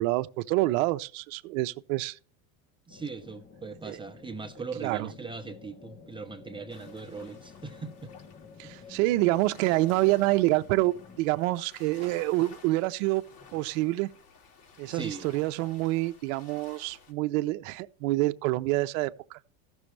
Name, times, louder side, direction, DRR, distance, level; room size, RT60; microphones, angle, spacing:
voice 1, 0.0-2.2 3.8-4.0 4.8-5.1 8.6-13.2 13.5-14.1 14.8-19.4, right 19 dB, 70° right, 0.7 m, -27 dB
sound 1, 2.9-11.2, left 5 dB, 25° left, 0.8 m, -51 dB
voice 2, 2.9-8.1 8.6-8.7 14.9-15.3, right 4 dB, 10° right, 0.8 m, -40 dB
sound 2, 6.7-17.1, left 4 dB, 55° left, 2.7 m, -54 dB
15.0 x 6.3 x 3.3 m
supercardioid pair, 120°, 42 cm